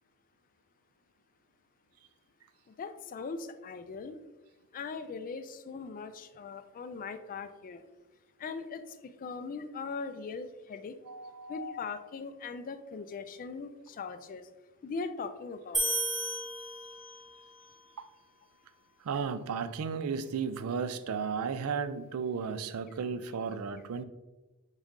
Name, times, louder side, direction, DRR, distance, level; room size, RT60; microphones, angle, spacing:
voice 1, 2.7-4.2 4.7-7.8 8.4-10.9 11.5-14.5 14.8-15.9, left 4 dB, 40° left, 10 dB, 0.3 m, -40 dB
voice 2, 11.1-11.6 19.0-24.0, right 6 dB, 70° right, 12 dB, 0.4 m, -34 dB
sound 1, 15.7-17.4, right 1 dB, ahead, 0.9 m, -33 dB
4.1 x 3.5 x 3.6 m, 1.1 s
head